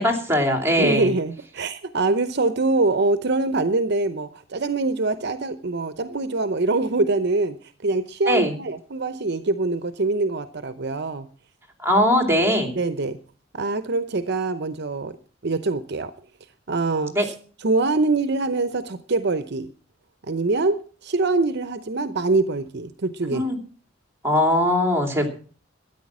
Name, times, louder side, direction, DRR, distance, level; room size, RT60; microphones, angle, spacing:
voice 1, 0.0-1.1 8.3-8.6 11.8-12.8 17.1-17.3 23.3-23.6 24.2-25.3, equal, 15° right, 2.9 m, -20 dB
voice 2, 0.8-7.6 7.8-11.3 12.8-13.2 13.5-15.2 15.4-16.1 16.7-17.3 17.6-19.7 20.3-23.4, right 3 dB, 60° right, 0.8 m, -24 dB
13.0 x 10.0 x 6.1 m
head